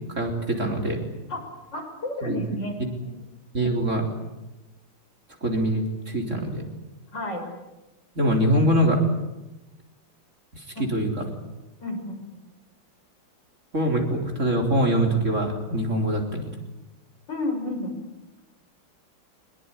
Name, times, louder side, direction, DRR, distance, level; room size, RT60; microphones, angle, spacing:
voice 1, 0.1-1.0 2.2-2.4 2.8-2.9 3.5-4.1 5.4-6.6 8.2-9.0 10.5-11.3 13.7-16.5, right 1 dB, 35° right, 2 dB, 4.1 m, -24 dB
voice 2, 1.7-3.2 7.1-7.5 10.8-10.9 11.8-12.4 17.3-18.0, left 1 dB, 60° left, 3 dB, 6.9 m, -31 dB
24.0 x 21.5 x 10.0 m, 1.0 s
omnidirectional pair, 2.2 m